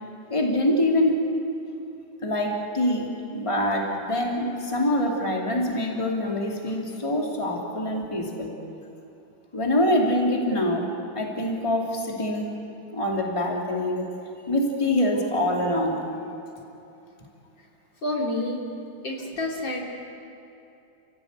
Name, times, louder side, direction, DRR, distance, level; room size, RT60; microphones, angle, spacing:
voice 1, 0.3-1.2 2.2-8.5 9.5-10.9 11.1-12.5 12.9-14.1 14.5-16.1, left 1 dB, 15° left, -1 dB, 2.8 m, -25 dB
voice 2, 18.0-18.6 19.0-19.8, left 1 dB, 70° left, -2 dB, 4.0 m, -28 dB
29.5 x 17.0 x 8.2 m, 2.9 s
omnidirectional pair, 2.1 m